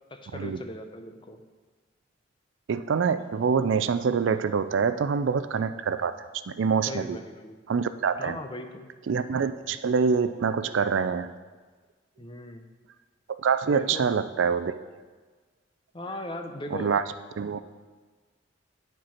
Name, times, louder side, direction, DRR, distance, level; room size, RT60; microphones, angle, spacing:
voice 1, 0.1-1.4 6.9-7.6 8.2-8.9 12.2-12.7 13.7-14.1 15.9-16.9, left 2 dB, 25° left, 6 dB, 0.6 m, -38 dB
voice 2, 2.7-6.1 6.5-7.2 7.7-8.4 9.1-11.3 13.4-14.7 16.7-17.0 17.4-17.6, right 6 dB, 85° right, 13 dB, 0.4 m, -25 dB
10.0 x 4.5 x 5.8 m, 1.4 s
head